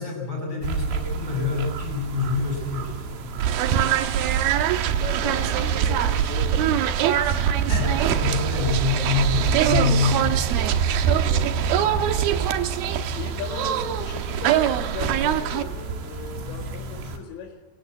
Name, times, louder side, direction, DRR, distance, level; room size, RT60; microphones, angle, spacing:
voice 1, 0.0-3.6 7.7-10.4, left 4 dB, 25° left, 0 dB, 8.4 m, -26 dB
sound 1, 0.6-17.2, right 4 dB, 85° right, 4.5 m, -30 dB
sound 2, 3.4-15.6, right 10 dB, 70° right, 2.7 m, -23 dB
voice 2, 3.5-3.9 4.9-7.6 11.0-12.1 13.2-17.6, left 5 dB, 90° left, 0 dB, 4.3 m, -38 dB
24.0 x 18.0 x 8.3 m, 1.2 s
omnidirectional pair, 5.0 m